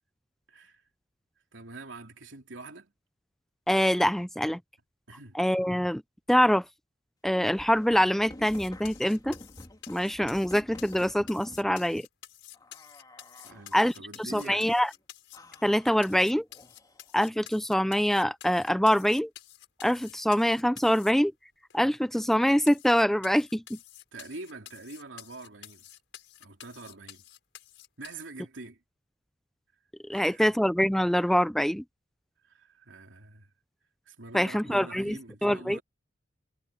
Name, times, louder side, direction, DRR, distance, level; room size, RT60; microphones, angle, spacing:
voice 1, 0.5-0.8 1.5-2.9 5.1-5.4 13.4-14.7 24.1-25.9 26.4-27.2 28.0-28.8 30.1-30.5 32.4-33.5 34.1-35.8, right 3 dB, 80° right, 3.0 m, -45 dB
voice 2, 3.7-4.6 5.3-6.0 6.3-6.6 7.2-9.4 9.9-12.0 13.7-13.9 14.2-14.9 15.6-16.4 17.1-19.3 19.8-21.3 21.7-23.8 30.1-31.8 34.3-35.8, equal, ahead, 0.4 m, -24 dB
sound 1, 7.3-11.7 12.5-13.8 14.3-14.9 15.3-17.2, left 1 dB, 20° left, 2.2 m, -50 dB
sound 2, 8.4-15.7 16.0-21.1 21.7-21.8 22.2-22.3 22.7-28.2, left 12 dB, 70° left, 5.9 m, -50 dB
head